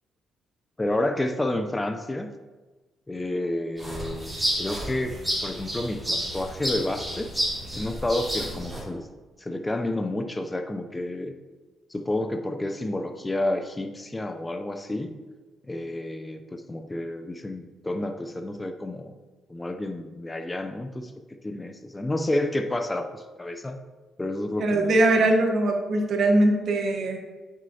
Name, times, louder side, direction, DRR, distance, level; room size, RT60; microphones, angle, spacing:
voice 1, 0.8-2.3 3.1-5.1 5.4-7.3 7.7-9.1 9.4-11.3 11.9-15.1 15.6-19.1 19.5-21.1 21.4-23.8 24.2-24.9, left 1 dB, 15° left, 6 dB, 0.5 m, -30 dB
sound 1, 3.8-8.8, equal, 10° right, 2.4 m, -31 dB
voice 2, 24.6-27.2, right 1 dB, 60° right, 2 dB, 1.1 m, -21 dB
8.7 x 6.2 x 2.8 m, 1.2 s
cardioid pair, 90°, 0 cm